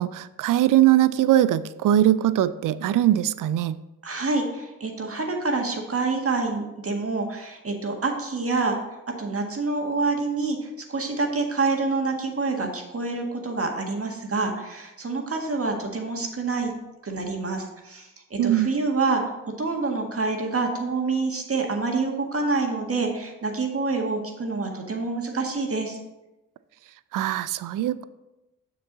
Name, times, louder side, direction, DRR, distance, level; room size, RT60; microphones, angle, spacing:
voice 1, 0.0-3.8 18.4-18.7 27.1-28.1, right 12 dB, 55° right, 16 dB, 0.5 m, -21 dB
voice 2, 4.0-8.8 9.2-16.7 17.0-26.0, right 3 dB, 35° right, 2 dB, 1.7 m, -27 dB
6.9 x 6.7 x 3.9 m, 0.98 s
hypercardioid pair, 45°, 38 cm